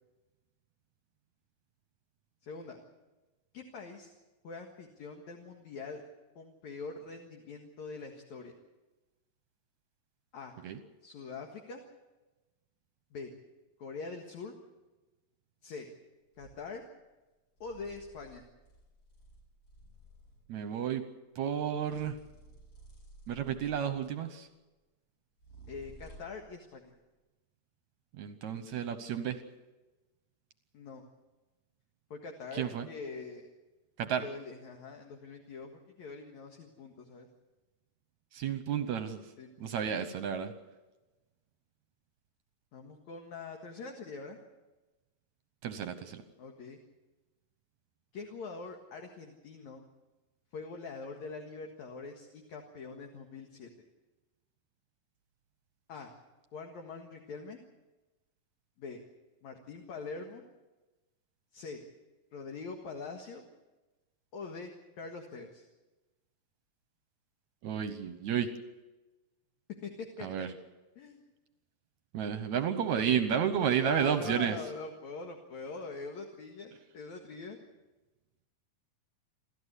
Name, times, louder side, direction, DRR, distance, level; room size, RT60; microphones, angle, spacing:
voice 1, 2.4-2.8 3.5-4.1 4.4-6.0 6.4-8.6 10.3-10.5 11.0-11.8 13.1-13.3 13.8-14.5 15.6-15.9 16.4-16.8 17.6-18.4 25.7-26.9 30.7-31.0 32.1-33.5 34.1-37.3 39.4-39.8 42.7-44.4 46.4-46.8 48.1-49.8 50.5-53.7 55.9-56.1 56.5-57.6 58.8-59.0 59.4-60.4 61.5-61.8 62.3-63.5 64.3-65.7 69.8-69.9 70.2-70.5 71.0-71.2 73.7-77.6, left 4 dB, 60° left, 2 dB, 2.8 m, -44 dB
sound 1, 16.3-16.7 17.6-20.6 21.8-24.0 25.4-26.5, right 2 dB, 45° left, 4.7 m, -55 dB
voice 2, 20.5-21.1 21.4-22.2 23.3-24.5 28.2-29.4 32.5-32.9 34.0-34.2 38.3-39.2 39.6-40.5 45.6-46.2 67.6-68.5 70.2-70.5 72.1-74.6, right 8 dB, 65° right, 10 dB, 2.0 m, -31 dB
28.5 x 13.5 x 8.3 m, 1.1 s
omnidirectional pair, 4.1 m